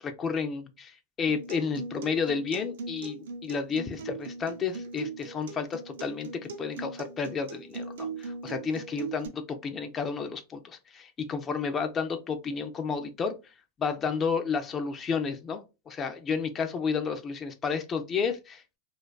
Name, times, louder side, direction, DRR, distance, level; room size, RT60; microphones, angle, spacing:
voice 1, 0.0-13.3 13.8-18.8, left 5 dB, 25° left, 0.3 m, -31 dB
Acoustic guitar, 1.3-9.3, right 4 dB, 85° right, 0.5 m, -40 dB
2.4 x 2.2 x 2.2 m
supercardioid pair, 130°, 0 cm